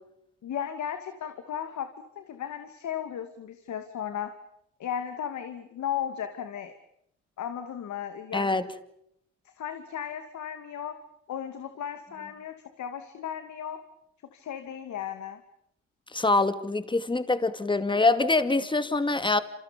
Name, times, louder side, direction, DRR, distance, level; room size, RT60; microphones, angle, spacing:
voice 1, 0.4-1.9 2.2-4.3 4.8-6.7 7.4-8.5 9.6-11.0 11.3-13.8 14.3-15.4, left 9 dB, 70° left, 8 dB, 2.5 m, -35 dB
voice 2, 8.3-8.7 16.1-19.4, left 3 dB, 15° left, 11 dB, 2.3 m, -24 dB
29.0 x 28.0 x 5.3 m, 0.74 s
cardioid pair, 90°, 30 cm